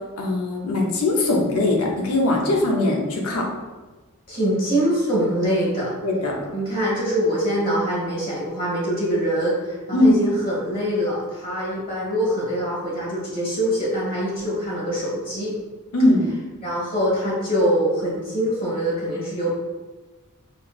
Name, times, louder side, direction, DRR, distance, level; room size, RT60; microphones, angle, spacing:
voice 1, 0.2-3.4 6.0-6.4 9.9-10.1 15.9-16.3, left 2 dB, 75° left, -1 dB, 0.7 m, -20 dB
voice 2, 4.3-5.9 6.5-15.5 16.6-19.5, equal, 40° left, -5 dB, 1.4 m, -24 dB
4.2 x 3.1 x 2.5 m, 1.2 s
head